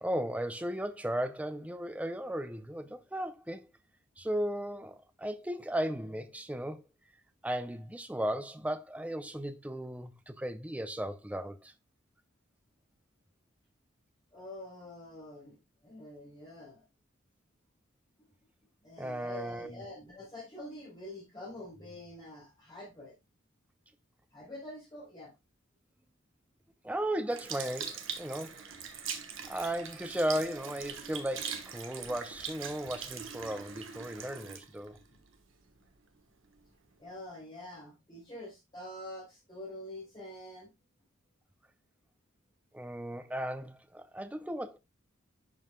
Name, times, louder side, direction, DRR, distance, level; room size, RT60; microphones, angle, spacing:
voice 1, 0.0-3.7 4.2-6.8 7.4-11.7 19.0-19.8 26.8-28.6 29.4-35.0 42.7-44.8, right 1 dB, 5° right, 0.5 m, -36 dB
voice 2, 14.3-15.6 15.8-16.8 18.8-23.1 24.3-25.3 35.1-35.2 37.0-40.7, left 1 dB, 20° left, 2.6 m, -46 dB
Sink (filling or washing) / Liquid, 27.3-35.9 36.5-36.6, right 7 dB, 75° right, 1.2 m, -42 dB
11.0 x 5.4 x 2.2 m
head